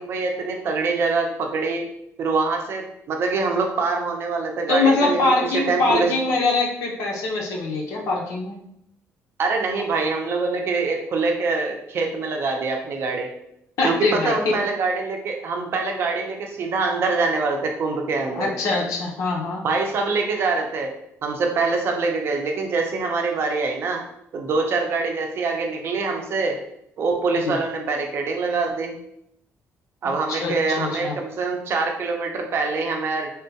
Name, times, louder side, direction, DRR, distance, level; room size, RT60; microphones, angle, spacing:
voice 1, 0.0-1.8 2.2-6.1 9.4-13.3 13.8-18.5 19.6-20.9 21.2-24.0 24.3-26.6 27.0-28.9 30.0-33.3, right 4 dB, 45° right, 2 dB, 0.5 m, -24 dB
voice 2, 4.7-8.6 13.8-14.6 18.3-19.6 27.4-27.6 30.0-31.2, left 3 dB, 80° left, -1 dB, 0.7 m, -23 dB
3.5 x 2.2 x 2.8 m, 0.77 s
cardioid pair, 155°, 6 cm